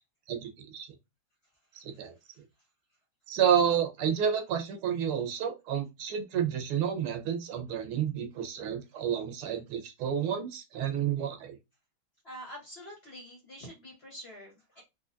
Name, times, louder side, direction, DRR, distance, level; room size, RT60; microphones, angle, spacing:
voice 1, 0.3-0.9 1.7-2.1 3.3-11.6, right 8 dB, 85° right, 5 dB, 1.8 m, -30 dB
voice 2, 12.2-14.8, equal, 35° left, -1 dB, 1.1 m, -46 dB
4.8 x 2.4 x 2.5 m, 0.24 s
omnidirectional pair, 2.3 m